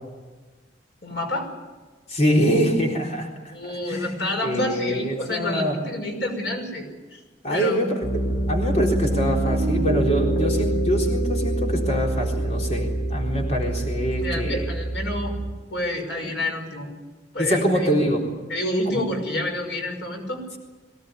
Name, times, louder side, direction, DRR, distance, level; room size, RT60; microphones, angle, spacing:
voice 1, 1.0-1.5 3.5-7.2 7.5-7.8 14.2-15.4 15.7-16.9 17.3-17.9 18.5-20.6, left 1 dB, 90° left, 3 dB, 5.9 m, -29 dB
voice 2, 2.1-3.6 3.9-5.8 7.4-8.2 8.5-14.7 16.2-16.3 17.4-18.2 18.9-19.0, equal, 40° left, 0 dB, 4.0 m, -24 dB
Piano, 8.0-15.5, right 1 dB, 65° left, 4.9 m, -25 dB
23.0 x 18.0 x 9.8 m, 1.3 s
head